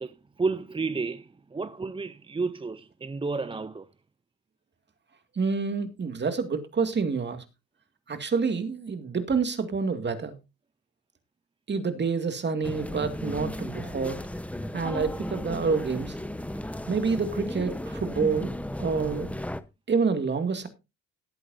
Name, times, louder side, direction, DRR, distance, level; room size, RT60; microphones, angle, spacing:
voice 1, 0.0-3.9, right 4 dB, 15° right, 0.6 m, -31 dB
voice 2, 5.4-7.4 8.1-10.4 11.7-14.2 14.7-16.2 16.9-19.3 19.9-20.7, right 5 dB, 35° right, 2.3 m, -28 dB
sound 1, 12.6-19.6, left 1 dB, 5° left, 1.0 m, -35 dB
17.5 x 8.6 x 2.7 m
cardioid pair, 90°, 30 cm